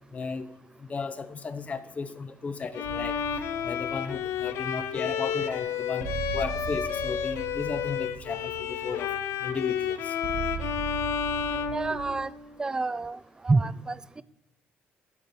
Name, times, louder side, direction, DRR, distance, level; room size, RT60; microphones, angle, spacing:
voice 1, 0.1-0.5 0.8-3.2 3.6-9.1 9.4-10.2, left 5 dB, 30° left, 12 dB, 0.7 m, -35 dB
Bowed string instrument, 2.7-12.6, left 8 dB, 75° left, 0.6 m, -31 dB
sound 1, 2.8-12.3, right 8 dB, 85° right, 0.6 m, -40 dB
voice 2, 11.5-12.3 12.6-14.2, right 3 dB, 15° right, 18 dB, 0.3 m, -28 dB
11.0 x 4.4 x 6.8 m, 0.84 s
cardioid pair, 115°, 4 cm